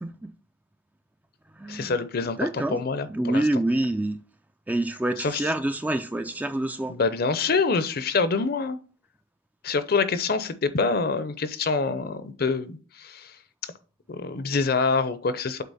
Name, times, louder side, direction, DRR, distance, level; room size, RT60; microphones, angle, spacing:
voice 1, 0.0-0.3 1.6-2.0 2.4-2.8 3.1-4.2 4.7-6.9, right 1 dB, 10° right, 0.3 m, -27 dB
voice 2, 1.7-3.4 5.2-5.4 6.9-8.8 9.6-13.3 13.6-13.7 14.1-15.6, left 4 dB, 50° left, 0.6 m, -26 dB
8.2 x 3.8 x 4.1 m
head